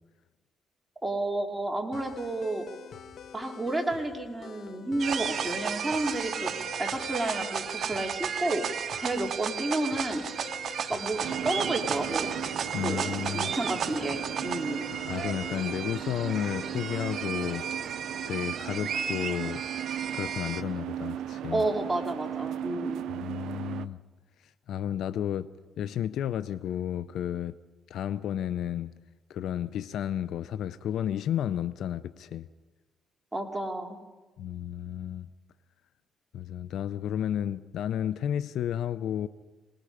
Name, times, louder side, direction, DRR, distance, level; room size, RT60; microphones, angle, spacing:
voice 1, 1.0-2.7 3.3-6.5 6.8-8.7 9.0-10.3 10.9-12.3 12.8-14.9 21.5-23.0 33.3-34.0, right 2 dB, 15° right, 2 dB, 3.2 m, -31 dB
sound 1, 1.9-18.0, left 7 dB, 60° left, 1.3 m, -47 dB
sound 2, 5.0-20.6, right 8 dB, 55° right, 1.1 m, -34 dB
sound 3, 11.2-23.9, right 10 dB, 80° right, 0.6 m, -37 dB
voice 2, 12.7-13.5 15.1-17.6 18.3-19.6 20.1-21.6 23.1-24.0 24.4-25.5 25.8-27.6 27.9-28.9 29.3-32.5 34.4-35.3 36.3-39.3, left 10 dB, 75° left, 14 dB, 0.6 m, -32 dB
27.0 x 19.5 x 5.0 m, 1.2 s
cardioid pair, 90°, 0 cm